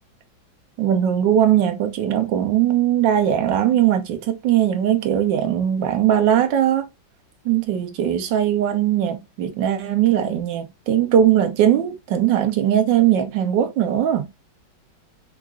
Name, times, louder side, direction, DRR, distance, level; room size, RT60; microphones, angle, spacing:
voice 1, 0.8-6.9 7.4-14.3, right 10 dB, 75° right, 1.3 m, -19 dB
4.6 x 2.4 x 2.4 m
omnidirectional pair, 2.1 m